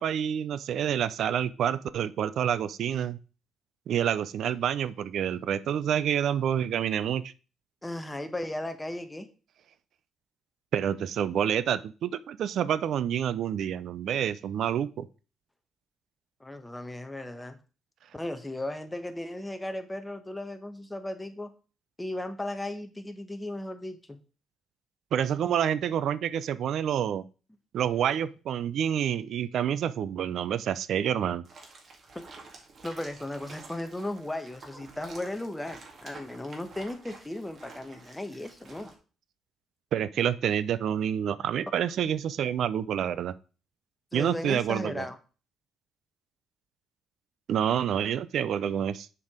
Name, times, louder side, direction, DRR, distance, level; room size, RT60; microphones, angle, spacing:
voice 1, 0.0-3.2 3.9-7.3 10.7-15.1 25.1-27.2 27.7-31.4 39.9-43.3 44.1-45.0 47.5-49.1, right 9 dB, 70° right, 16 dB, 0.5 m, -28 dB
voice 2, 7.8-9.3 16.4-17.6 18.1-21.5 22.0-24.2 32.1-32.3 32.8-38.9 44.1-45.2, left 1 dB, 10° left, 8 dB, 1.1 m, -36 dB
sound 1, 31.4-38.9, right 3 dB, 50° right, 2.0 m, -50 dB
6.9 x 4.7 x 5.0 m, 0.35 s
cardioid pair, 90°, 0 cm